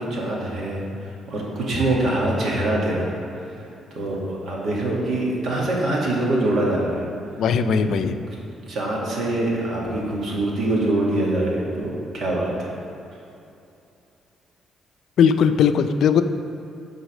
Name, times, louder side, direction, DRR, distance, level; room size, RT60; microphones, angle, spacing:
voice 1, 0.0-3.2 4.0-7.1 7.8-8.0 8.7-12.7, right 1 dB, 65° right, -3 dB, 2.0 m, -24 dB
voice 2, 7.4-8.2 15.2-16.2, left 7 dB, 70° left, 10 dB, 0.4 m, -18 dB
8.1 x 4.0 x 6.4 m, 2.7 s
cardioid pair, 90°, 0 cm